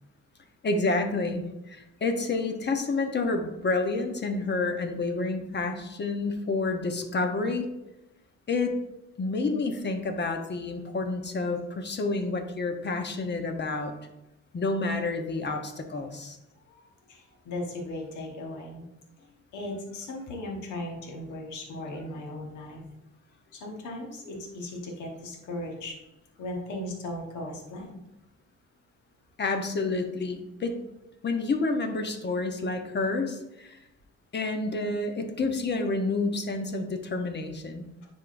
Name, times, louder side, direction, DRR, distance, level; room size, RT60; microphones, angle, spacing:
voice 1, 0.6-7.7 8.5-8.8 9.2-13.9 14.5-16.4 29.4-30.8 31.2-33.8 34.3-37.9, left 3 dB, 35° left, 5 dB, 0.9 m, -29 dB
voice 2, 17.1-18.9 19.5-22.8 23.5-26.0 26.4-28.0, left 1 dB, 80° left, 0 dB, 1.3 m, -37 dB
10.0 x 3.7 x 2.6 m, 0.93 s
cardioid pair, 90°, 30 cm